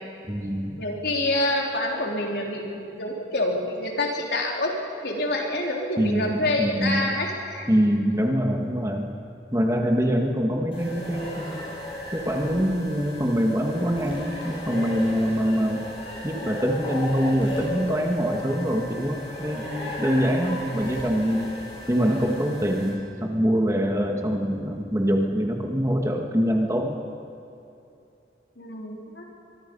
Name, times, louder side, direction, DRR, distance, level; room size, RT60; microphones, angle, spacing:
voice 1, 0.3-0.8 6.0-7.1 7.7-9.1 9.5-11.6 12.1-15.9 16.2-21.5 21.9-27.0, equal, 15° right, 2 dB, 1.8 m, -24 dB
voice 2, 0.8-4.7 5.0-7.7 28.6-29.2, left 1 dB, 70° left, -1 dB, 3.6 m, -27 dB
sound 1, 10.7-22.9, left 1 dB, 30° left, 7.5 m, -35 dB
23.5 x 23.5 x 5.5 m, 2.7 s
head